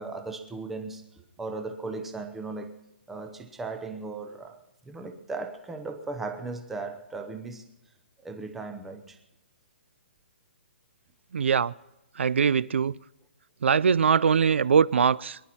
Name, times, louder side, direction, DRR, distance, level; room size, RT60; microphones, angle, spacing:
voice 1, 0.0-2.8 3.1-4.6 4.9-7.6 8.2-9.2, right 3 dB, 5° right, 0.7 m, -37 dB
voice 2, 11.3-11.7 12.2-13.0 13.6-15.4, right 6 dB, 70° right, 0.4 m, -22 dB
23.0 x 11.0 x 4.2 m
hypercardioid pair, 180°, 7 cm